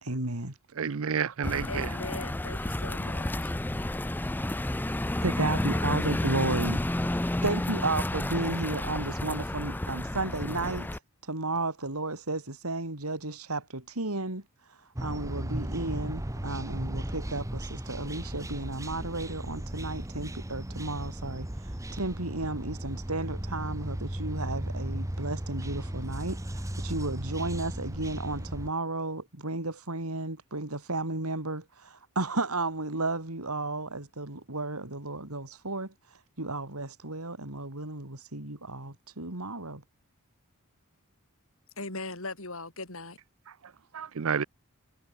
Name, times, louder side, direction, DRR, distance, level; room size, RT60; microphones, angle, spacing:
voice 1, 0.0-0.5 5.2-6.8 7.4-10.9 11.2-14.4 15.0-21.5 21.9-35.9 36.4-39.8, right 2 dB, 90° right, 3.9 m, -33 dB
voice 2, 0.8-1.9 43.9-44.4, right 6 dB, 70° right, 0.6 m, -30 dB
sound 1, 1.4-11.0, left 1 dB, 10° left, 0.5 m, -31 dB
voice 3, 1.7-3.5 41.8-43.2, left 3 dB, 70° left, 7.7 m, -39 dB
sound 2, 15.0-28.7, right 1 dB, 15° right, 1.1 m, -36 dB
head